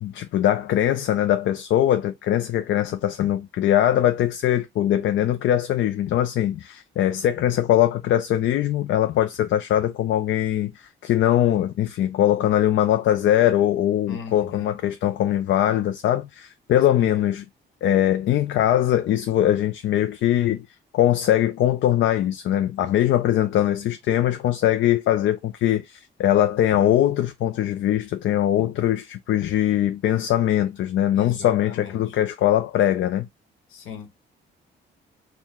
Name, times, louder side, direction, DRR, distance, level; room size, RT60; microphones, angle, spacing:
voice 1, 0.0-17.4 17.8-20.7 20.9-33.3, left 12 dB, 70° left, 0.5 m, -21 dB
voice 2, 14.1-14.7 17.0-17.3 31.1-32.2 33.7-34.1, left 6 dB, 85° left, 1.0 m, -38 dB
4.4 x 2.3 x 3.5 m
cardioid pair, 90°, 20 cm